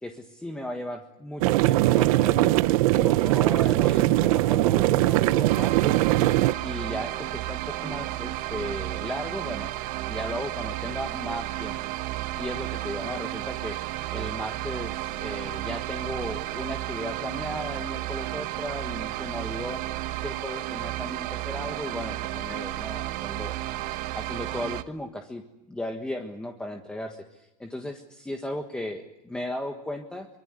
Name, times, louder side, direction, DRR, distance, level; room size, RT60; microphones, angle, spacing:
voice 1, 0.0-2.6 2.9-6.0 6.6-9.7 10.1-11.7 12.0-12.1 12.4-13.8 14.1-19.8 20.2-23.5 24.1-30.3, left 1 dB, 5° left, 4 dB, 1.6 m, -36 dB
sound 1, 1.4-6.5, right 17 dB, 80° right, 0.9 m, -21 dB
sound 2, 5.5-24.8, right 15 dB, 50° right, 1.3 m, -33 dB
25.0 x 24.5 x 8.1 m, 0.90 s
cardioid pair, 165°, 18 cm